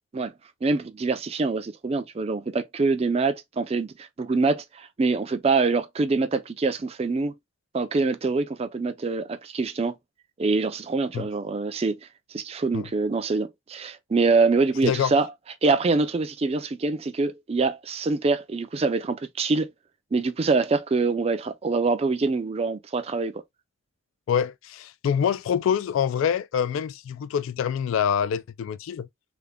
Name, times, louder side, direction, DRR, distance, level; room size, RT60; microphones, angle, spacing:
voice 1, 0.6-7.3 7.7-9.9 10.4-12.0 12.3-15.3 15.6-19.7 20.1-23.4, right 3 dB, 30° right, 0.4 m, -25 dB
voice 2, 14.8-15.1 24.3-29.1, left 8 dB, 85° left, 0.3 m, -25 dB
3.4 x 2.1 x 3.6 m
head